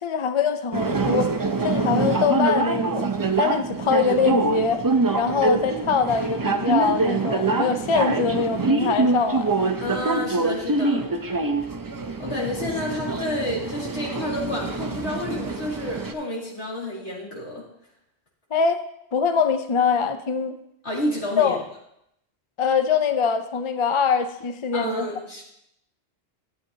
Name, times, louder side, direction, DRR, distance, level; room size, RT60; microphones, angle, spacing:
voice 1, 0.0-1.3 1.6-3.1 3.4-4.8 5.1-9.6 18.5-18.8 19.1-20.6 21.4-21.6 22.6-25.1, left 6 dB, 40° left, 8 dB, 0.4 m, -23 dB
sound 1, 0.7-16.1, right 3 dB, 35° right, 0.3 m, -25 dB
voice 2, 9.8-11.1 12.2-17.6 20.8-21.6 24.7-25.4, left 1 dB, 80° left, -4 dB, 2.7 m, -30 dB
11.5 x 8.4 x 2.7 m, 0.78 s
omnidirectional pair, 1.1 m